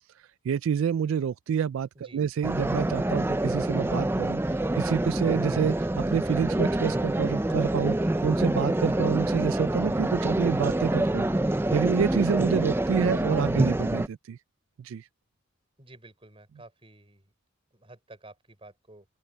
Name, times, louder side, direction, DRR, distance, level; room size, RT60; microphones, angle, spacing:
voice 1, 0.2-14.4 14.8-15.1, right 7 dB, 75° right, 0.3 m, -28 dB
sound 1, 2.4-14.1, right 1 dB, 10° right, 0.4 m, -26 dB
voice 2, 15.8-17.3 17.7-19.1, right 2 dB, 25° right, 5.6 m, -51 dB
open air
head